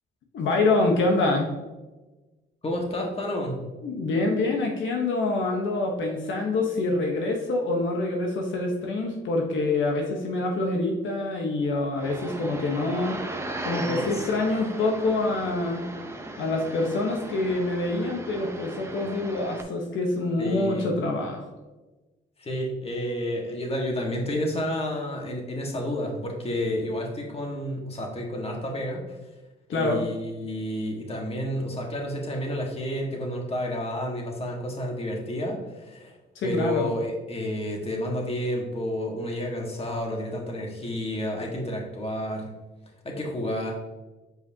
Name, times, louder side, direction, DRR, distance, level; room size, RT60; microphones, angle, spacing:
voice 1, 0.3-1.5 3.8-13.2 13.6-15.9 16.4-21.4 29.7-30.0 36.3-36.9, left 2 dB, 75° left, 1 dB, 1.1 m, -26 dB
voice 2, 2.6-3.6 13.8-14.3 20.4-20.9 22.4-29.2 29.7-36.2 36.4-42.5 43.0-43.7, left 1 dB, 30° left, 0 dB, 1.6 m, -30 dB
sound 1, 12.0-19.6, right 2 dB, 15° right, 0.8 m, -37 dB
7.7 x 5.2 x 2.8 m, 1.1 s
cardioid pair, 90°, 20 cm